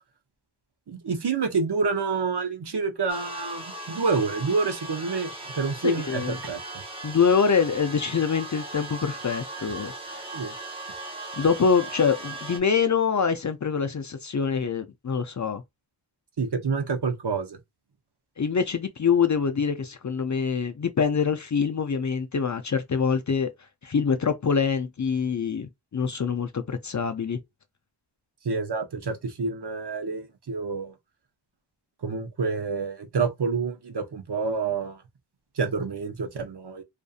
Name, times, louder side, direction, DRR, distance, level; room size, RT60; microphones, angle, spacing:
voice 1, 0.9-6.8 10.3-10.5 16.4-17.6 28.4-30.9 32.0-35.0 35.5-36.8, right 4 dB, 55° right, 0.7 m, -28 dB
sound 1, 3.1-12.6, right 2 dB, 10° right, 0.7 m, -38 dB
voice 2, 5.8-6.4 7.0-9.9 11.4-15.6 18.4-23.5 23.8-27.4, left 6 dB, 40° left, 0.4 m, -25 dB
2.5 x 2.5 x 2.4 m
wide cardioid pair, 50°, 47 cm